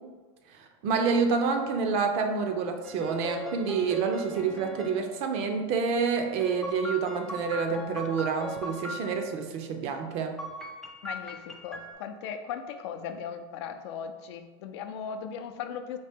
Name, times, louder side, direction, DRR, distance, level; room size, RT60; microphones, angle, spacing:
voice 1, 0.5-10.4, right 5 dB, 45° right, 5 dB, 0.5 m, -28 dB
sound 1, 2.8-5.0 6.4-9.1 10.4-11.9, left 1 dB, 5° left, 0.4 m, -39 dB
voice 2, 11.0-16.0, left 7 dB, 70° left, 7 dB, 0.4 m, -38 dB
4.3 x 2.8 x 3.5 m, 1.3 s
supercardioid pair, 140°, 15 cm